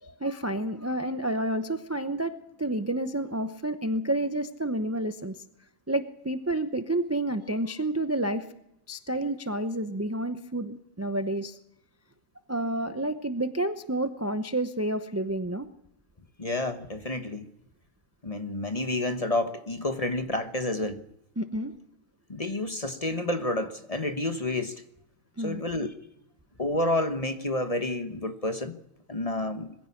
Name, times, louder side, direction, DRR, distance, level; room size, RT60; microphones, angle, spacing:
voice 1, 0.0-5.4 5.9-8.5 8.9-11.6 12.5-15.7 21.4-21.7 25.4-25.6, right 1 dB, 15° right, 0.6 m, -30 dB
voice 2, 16.4-17.4 18.2-21.0 22.3-24.8 25.4-25.9 26.6-28.8 29.1-29.7, left 1 dB, 25° left, 1.1 m, -29 dB
21.5 x 15.5 x 8.5 m
omnidirectional pair, 1.6 m